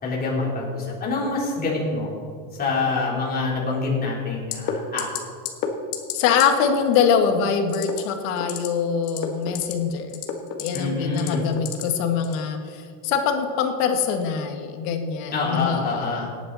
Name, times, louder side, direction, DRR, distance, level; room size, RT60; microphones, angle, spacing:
voice 1, 0.0-2.1 2.6-5.1 10.7-11.4 15.3-16.3, left 3 dB, 25° left, -5 dB, 3.6 m, -26 dB
sound 1, 4.5-4.7 5.0-5.2 5.5-5.7 5.9-6.1 6.4-6.5 7.7-8.0 8.4-8.7 9.0-9.7 10.1-10.8 11.2-11.8 12.2-12.4, left 12 dB, 60° left, 1.8 m, -29 dB
voice 2, 6.1-10.2 10.6-16.0, left 7 dB, 80° left, 5 dB, 1.8 m, -23 dB
18.0 x 9.4 x 4.1 m, 2.2 s
cardioid pair, 150°, 39 cm